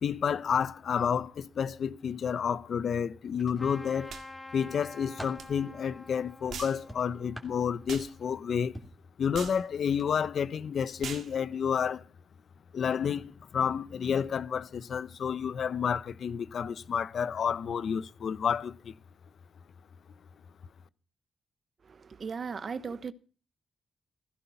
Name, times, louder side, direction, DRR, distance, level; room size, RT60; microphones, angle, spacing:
voice 1, 0.0-4.1 4.5-8.8 9.2-12.0 12.7-18.9, left 7 dB, 60° left, 0.9 m, -30 dB
sound 1, 3.3-4.1 4.6-5.5 6.9-8.3 8.7-9.0 9.9-10.1 10.5-10.6, equal, ahead, 3.1 m, -46 dB
Trumpet, 3.6-8.6, left 2 dB, 15° left, 2.8 m, -49 dB
sound 2, 4.1-4.3 5.4-5.5 6.5-6.8 7.9-8.1 9.3-9.6 11.0-11.3, right 7 dB, 80° right, 2.0 m, -40 dB
voice 2, 21.8-23.1, right 5 dB, 40° right, 1.1 m, -37 dB
16.5 x 15.5 x 5.7 m
wide cardioid pair, 135°, 0 cm